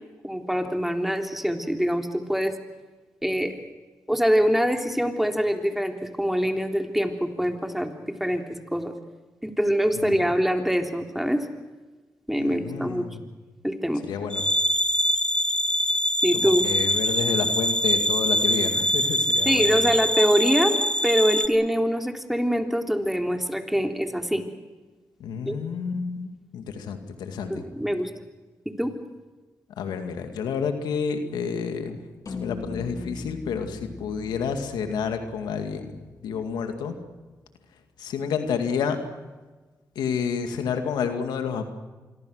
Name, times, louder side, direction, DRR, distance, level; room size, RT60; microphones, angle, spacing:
voice 1, 0.2-2.5 3.2-3.6 4.1-8.9 9.4-11.5 12.3-13.1 13.6-14.0 16.2-16.6 19.5-20.8 21.0-24.4 25.5-25.6 27.5-28.1 28.8-28.9, equal, 5° right, 4 dB, 3.5 m, -24 dB
voice 2, 12.4-13.2 14.0-14.4 16.3-19.9 25.2-27.6 29.8-32.0 32.4-37.0 38.0-39.0 40.0-41.7, left 6 dB, 90° left, 6 dB, 2.1 m, -30 dB
sound 1, 14.3-21.5, equal, 15° left, 1.7 m, -23 dB
sound 2, 32.3-36.7, left 3 dB, 55° left, 3.1 m, -40 dB
26.0 x 23.0 x 6.4 m, 1.3 s
supercardioid pair, 45°, 7 cm